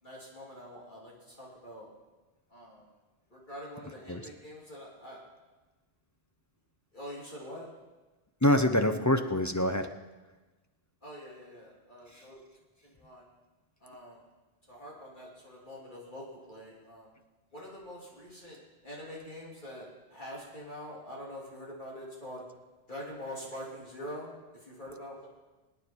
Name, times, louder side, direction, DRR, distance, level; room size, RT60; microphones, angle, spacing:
voice 1, 0.0-1.9 2.5-2.9 3.3-5.2 6.9-7.7 11.0-12.4 12.8-13.2 13.8-14.2 14.7-17.1 17.5-22.4 22.9-25.3, equal, 50° left, -5 dB, 3.3 m, -45 dB
voice 2, 8.4-9.9 12.1-12.2, left 1 dB, 20° left, 7 dB, 0.7 m, -25 dB
24.5 x 9.9 x 4.5 m, 1.2 s
omnidirectional pair, 1.1 m